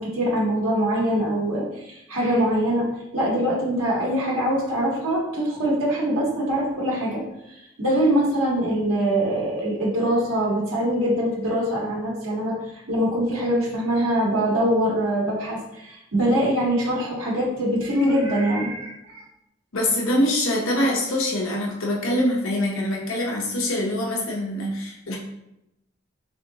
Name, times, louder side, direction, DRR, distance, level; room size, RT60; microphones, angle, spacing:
voice 1, 0.0-19.2, equal, 85° right, -4 dB, 1.1 m, -23 dB
voice 2, 19.7-25.2, left 1 dB, 75° left, -2 dB, 0.9 m, -24 dB
3.7 x 3.2 x 2.8 m, 0.84 s
head